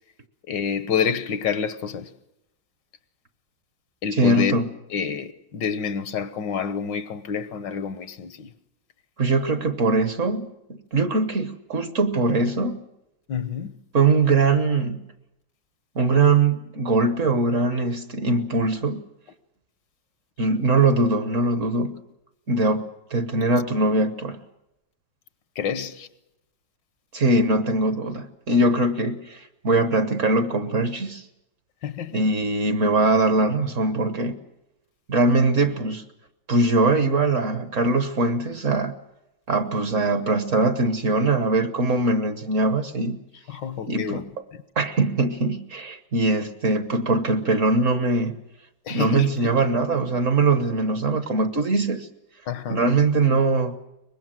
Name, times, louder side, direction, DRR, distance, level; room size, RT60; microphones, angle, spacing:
voice 1, 0.5-2.1 4.0-4.6 4.9-8.5 13.3-13.7 25.5-26.1 31.8-32.2 43.5-44.6 48.9-49.6 52.5-52.8, left 6 dB, 70° left, 1.7 m, -28 dB
voice 2, 4.1-4.7 9.2-10.5 10.9-12.8 13.9-15.1 15.9-19.0 20.4-22.0 22.5-24.4 27.1-31.3 32.1-34.4 35.1-36.0 36.5-38.9 39.5-43.2 43.9-44.2 44.8-48.4 48.9-52.1 52.7-53.8, right 2 dB, 45° right, 1.4 m, -22 dB
24.0 x 21.0 x 7.6 m
omnidirectional pair, 2.0 m